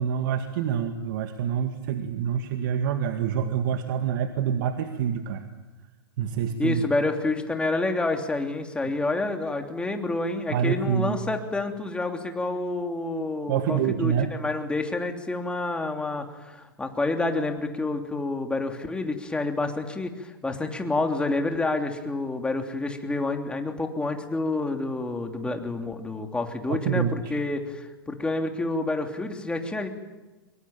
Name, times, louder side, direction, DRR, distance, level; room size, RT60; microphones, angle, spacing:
voice 1, 0.0-5.4 6.2-6.8 10.5-11.2 13.5-14.3 26.7-27.4, right 8 dB, 60° right, 7 dB, 1.9 m, -26 dB
voice 2, 6.6-29.9, left 2 dB, 10° left, 4 dB, 3.1 m, -28 dB
24.5 x 22.5 x 9.0 m, 1.2 s
hypercardioid pair, 115°, 13 cm